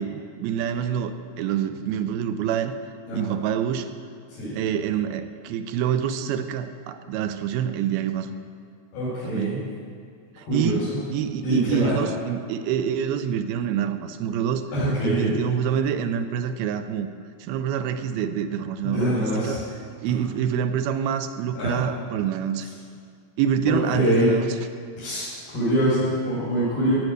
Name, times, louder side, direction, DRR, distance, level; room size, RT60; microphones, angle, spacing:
voice 1, 0.0-2.7 3.1-3.9 4.5-8.4 9.2-9.7 10.5-14.7 15.0-17.1 17.4-19.2 19.4-19.6 20.0-22.7 23.4-24.5, right 8 dB, 80° right, 9 dB, 2.5 m, -26 dB
voice 2, 8.9-9.6 10.5-11.0 11.4-12.0 14.7-15.3 18.8-19.6 20.1-20.2 21.6-21.8 22.6-22.7 23.7-24.3 25.0-26.9, equal, 85° left, -10 dB, 6.5 m, -24 dB
15.5 x 9.4 x 6.6 m, 2.2 s
omnidirectional pair, 4.4 m